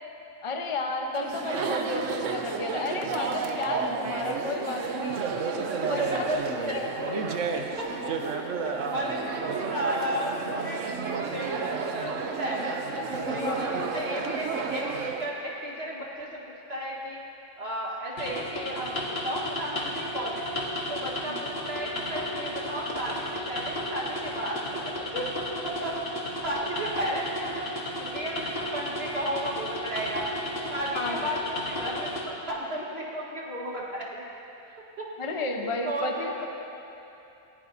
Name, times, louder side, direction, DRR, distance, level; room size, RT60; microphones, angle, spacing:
voice 1, 0.4-5.2 5.7-6.2 6.7-7.2 12.9-13.7 21.2-21.4 30.9-31.3 35.2-36.5, left 3 dB, 25° left, 2 dB, 0.9 m, -32 dB
Chatter, 1.1-15.3, right 5 dB, 60° right, 1.1 m, -31 dB
voice 2, 5.7-12.8 13.2-16.4 16.7-17.2 17.6-20.5 20.9-30.3 30.7-34.2 34.7-35.0 35.3-35.5 35.8-36.5, equal, 45° right, -4 dB, 1.8 m, -34 dB
sound 1, 18.2-32.2, left 1 dB, 45° left, 1.6 m, -34 dB
20.5 x 15.0 x 2.8 m, 2.9 s
omnidirectional pair, 1.5 m